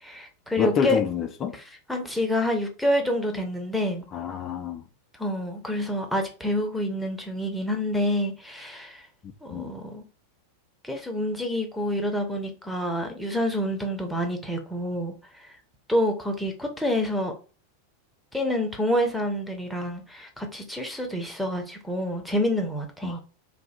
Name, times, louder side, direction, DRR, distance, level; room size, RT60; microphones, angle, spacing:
voice 1, 0.0-1.0 1.5-1.6 1.9-4.0 5.2-9.1 9.4-10.0 10.8-15.5 15.9-17.3 18.3-23.2, left 1 dB, ahead, 0.8 m, -27 dB
voice 2, 0.6-1.6 4.1-4.8 9.5-9.7 23.0-23.2, left 6 dB, 30° left, 0.5 m, -27 dB
3.3 x 2.5 x 4.2 m
figure-of-eight pair, 90°, 0 cm